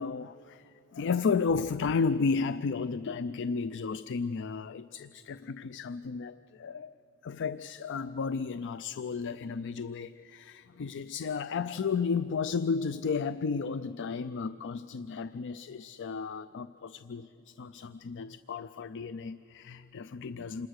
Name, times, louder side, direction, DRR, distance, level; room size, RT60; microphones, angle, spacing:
voice 1, 0.0-6.9 7.2-20.7, left 5 dB, 55° left, 0.4 m, -33 dB
27.5 x 20.5 x 6.5 m
head